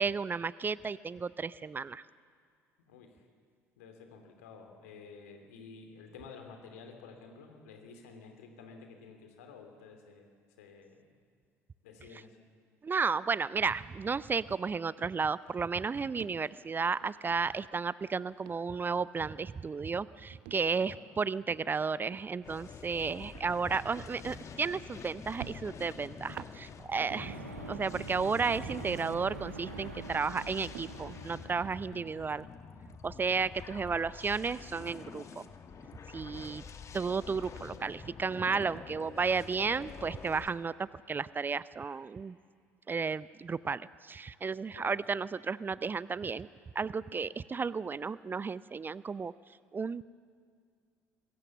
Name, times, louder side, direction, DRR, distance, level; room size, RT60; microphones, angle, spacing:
voice 1, 0.0-2.0 12.8-27.3 27.7-32.4 33.0-35.5 36.1-36.6 36.9-42.4 42.9-46.5 46.7-49.3 49.7-50.0, right 5 dB, 25° right, 19 dB, 0.5 m, -33 dB
voice 2, 2.9-3.2 3.8-10.3 10.6-11.2 11.8-12.4 20.6-21.1 23.7-23.8 27.2-27.6 31.9-32.1 36.3-36.6 44.7-45.2, left 5 dB, 70° left, 5 dB, 2.9 m, -52 dB
sound 1, 14.5-14.7 15.0-18.0 18.3-19.2 19.4-19.8 20.3-25.0 25.4-27.5 27.9-29.3 29.7-31.8, right 12 dB, 60° right, 1.0 m, -53 dB
sound 2, 22.4-40.5, left 6 dB, 40° left, 1.5 m, -47 dB
sound 3, 27.1-32.1, right 4 dB, 85° right, 1.5 m, -45 dB
24.5 x 22.5 x 7.2 m, 2.1 s
figure-of-eight pair, 55°, 8 cm